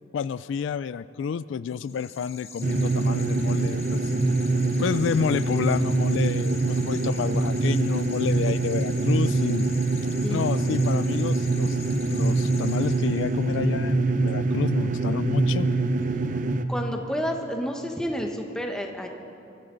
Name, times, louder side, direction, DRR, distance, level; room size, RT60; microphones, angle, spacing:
voice 1, 0.1-4.0 4.8-9.7 10.3-11.8 12.0-15.7, left 6 dB, 80° left, 17 dB, 0.3 m, -29 dB
sound 1, 1.7-13.6, left 6 dB, 35° left, 1.3 m, -44 dB
sound 2, 2.6-16.7, right 3 dB, 40° right, 0.6 m, -24 dB
voice 2, 16.7-19.1, equal, 5° left, 2 dB, 1.0 m, -30 dB
24.0 x 14.0 x 3.9 m, 2.7 s
head